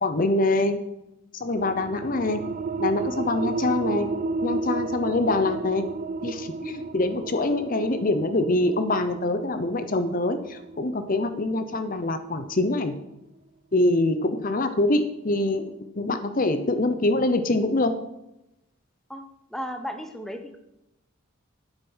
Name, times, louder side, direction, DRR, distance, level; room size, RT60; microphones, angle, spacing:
voice 1, 0.0-0.8 1.4-2.4 2.8-4.1 4.4-5.9 6.2-12.9 13.7-15.6 15.9-17.9, left 2 dB, 40° left, 9 dB, 0.8 m, -24 dB
sound 1, 1.5-12.8, right 3 dB, 40° right, 0.3 m, -33 dB
voice 2, 19.1-20.6, equal, ahead, 5 dB, 0.8 m, -35 dB
9.1 x 6.8 x 6.2 m, 0.87 s
head